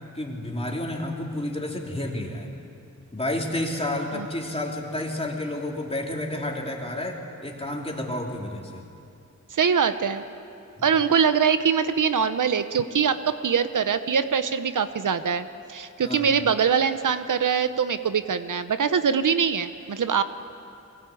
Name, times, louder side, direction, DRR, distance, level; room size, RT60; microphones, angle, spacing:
voice 1, 0.1-2.5 3.1-8.8 10.8-10.9 16.0-16.3, left 1 dB, 20° left, 0 dB, 3.3 m, -30 dB
voice 2, 9.5-10.2 10.8-20.2, right 6 dB, 75° right, 11 dB, 0.9 m, -23 dB
23.5 x 18.5 x 8.5 m, 2.7 s
wide cardioid pair, 70°, 31 cm